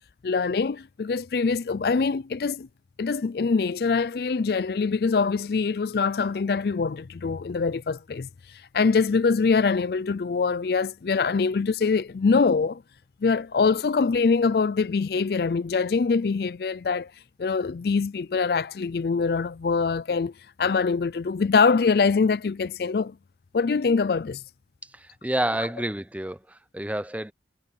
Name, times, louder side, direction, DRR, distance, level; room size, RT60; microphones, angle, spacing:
voice 1, 0.2-2.7 3.0-8.3 8.7-12.8 13.2-17.1 17.4-20.3 20.6-23.2 23.5-24.4, left 4 dB, 60° left, 0.4 m, -24 dB
voice 2, 24.8-27.3, right 1 dB, 10° right, 0.6 m, -29 dB
head